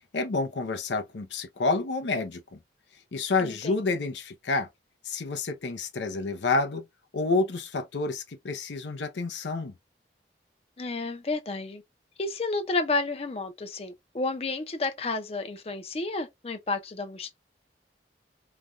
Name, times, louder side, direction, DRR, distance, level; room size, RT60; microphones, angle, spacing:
voice 1, 0.1-2.6 3.1-4.7 5.0-6.9 7.1-9.7, left 3 dB, 80° left, 0.6 m, -29 dB
voice 2, 3.4-3.8 10.8-11.8 12.2-17.4, left 3 dB, 35° left, 0.5 m, -31 dB
3.2 x 2.2 x 2.5 m
head